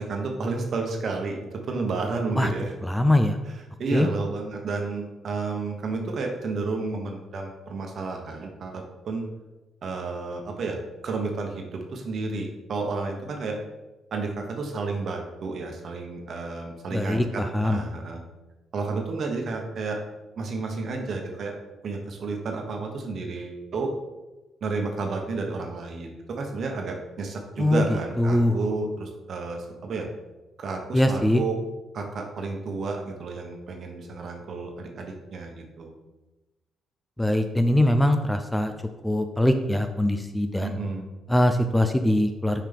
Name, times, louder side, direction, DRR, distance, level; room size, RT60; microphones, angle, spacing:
voice 1, 0.0-2.7 3.8-9.3 9.8-10.8 11.0-13.6 14.1-18.2 18.7-20.0 20.4-21.5 21.8-23.9 24.6-30.1 30.6-31.6 31.9-35.9 40.6-41.1, right 3 dB, 55° right, 3 dB, 1.1 m, -31 dB
voice 2, 2.8-3.4 3.9-4.1 16.9-17.8 27.6-27.8 28.2-28.6 30.9-31.4 37.2-38.7 39.0-40.8 41.3-42.6, left 1 dB, 5° left, 7 dB, 0.4 m, -22 dB
5.7 x 4.8 x 3.5 m, 1.1 s
cardioid pair, 90°, 0 cm